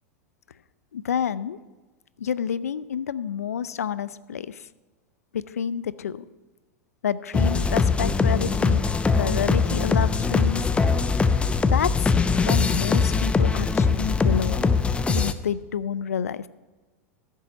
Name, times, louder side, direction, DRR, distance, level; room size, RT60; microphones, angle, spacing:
voice 1, 0.9-1.6 2.2-4.7 5.3-6.3 7.0-8.8 9.2-10.7 11.7-12.1 12.4-14.7 15.1-16.5, left 8 dB, 80° left, 17 dB, 0.5 m, -29 dB
sound 1, 7.3-15.3, left 4 dB, 15° left, 0.6 m, -22 dB
14.0 x 7.4 x 5.2 m, 1.3 s
hypercardioid pair, 95°, 8 cm